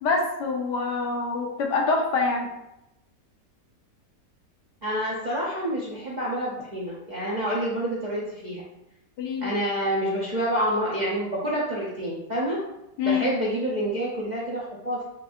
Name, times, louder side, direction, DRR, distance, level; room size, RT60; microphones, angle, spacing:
voice 1, 0.0-2.5 9.2-9.5 13.0-13.3, left 4 dB, 80° left, 1 dB, 1.4 m, -25 dB
voice 2, 4.8-8.6 9.4-12.6 13.0-15.0, right 1 dB, 50° right, -6 dB, 0.5 m, -28 dB
6.4 x 2.5 x 2.4 m, 0.88 s
omnidirectional pair, 1.8 m